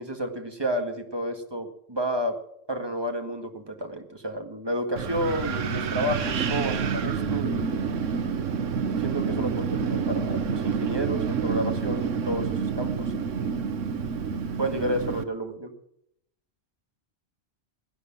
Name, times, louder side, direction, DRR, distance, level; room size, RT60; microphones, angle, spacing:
voice 1, 0.0-2.3 2.7-7.9 9.0-13.5 14.6-15.7, equal, 20° right, 5 dB, 1.8 m, -31 dB
Wind, 5.0-15.2, right 6 dB, 80° right, 1.4 m, -28 dB
18.0 x 9.9 x 7.2 m, 0.76 s
omnidirectional pair, 1.3 m